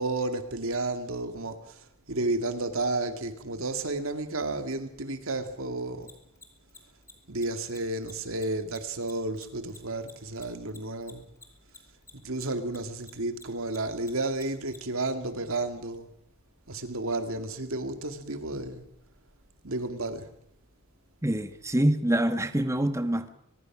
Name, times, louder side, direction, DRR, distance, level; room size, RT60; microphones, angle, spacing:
voice 1, 0.0-1.7 2.1-6.1 7.3-11.3 12.1-16.1 16.7-18.8 19.6-20.3, right 2 dB, 75° right, 2.4 m, -32 dB
Mechanisms, 6.0-12.8 13.0-14.8, left 4 dB, 15° left, 3.1 m, -49 dB
voice 2, 21.2-23.3, right 1 dB, 15° right, 1.3 m, -25 dB
23.5 x 21.5 x 6.2 m
head